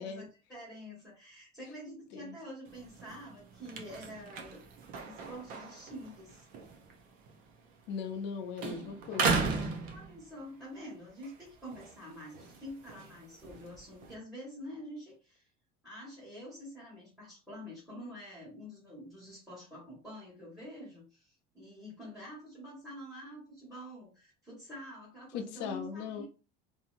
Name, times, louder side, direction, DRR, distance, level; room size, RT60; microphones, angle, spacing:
voice 1, 0.0-4.6 5.0-6.5 9.9-15.5 15.8-26.2, equal, ahead, -8 dB, 1.4 m, -47 dB
sound 1, 2.7-8.3 8.6-10.6 11.1-14.1, right 4 dB, 45° right, 0.6 m, -37 dB
voice 2, 7.9-9.3 25.3-26.2, left 6 dB, 60° left, 5 dB, 0.7 m, -39 dB
2.8 x 2.7 x 2.5 m, 0.34 s
cardioid pair, 155°, 20 cm